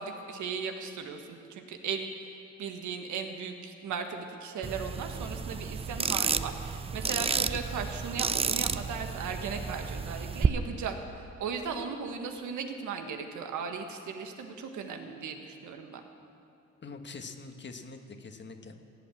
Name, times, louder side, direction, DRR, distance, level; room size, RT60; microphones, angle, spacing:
voice 1, 0.0-2.1 2.6-16.0, right 5 dB, 75° right, 5 dB, 1.6 m, -37 dB
sound 1, 4.6-10.5, right 5 dB, 20° right, 0.4 m, -31 dB
voice 2, 16.8-18.8, left 4 dB, 35° left, 6 dB, 1.3 m, -44 dB
16.5 x 8.4 x 8.6 m, 2.6 s
cardioid pair, 90°, 30 cm